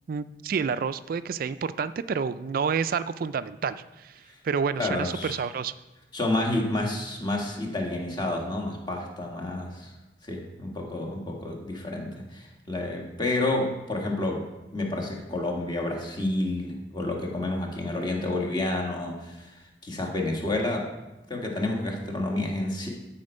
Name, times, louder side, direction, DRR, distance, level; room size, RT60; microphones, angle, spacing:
voice 1, 0.1-4.2 4.4-5.7, right 6 dB, 50° right, 14 dB, 0.3 m, -29 dB
voice 2, 4.8-5.3 6.1-9.9 10.2-14.4 14.7-20.9 21.3-22.9, left 2 dB, 25° left, 0 dB, 1.4 m, -29 dB
12.5 x 4.4 x 5.4 m, 1.0 s
head